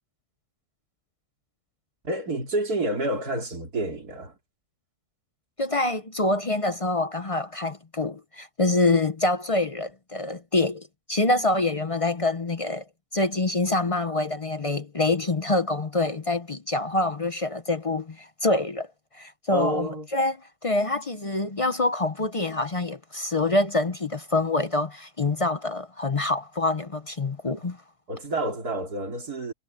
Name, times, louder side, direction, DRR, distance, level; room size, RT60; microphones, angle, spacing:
voice 1, 2.0-4.4 19.5-20.1 28.1-29.5, right 1 dB, 80° right, 3.7 m, -29 dB
voice 2, 5.6-12.8 13.1-18.9 19.1-20.4 20.6-27.8, left 2 dB, 30° left, 0.6 m, -26 dB
omnidirectional pair, 1.6 m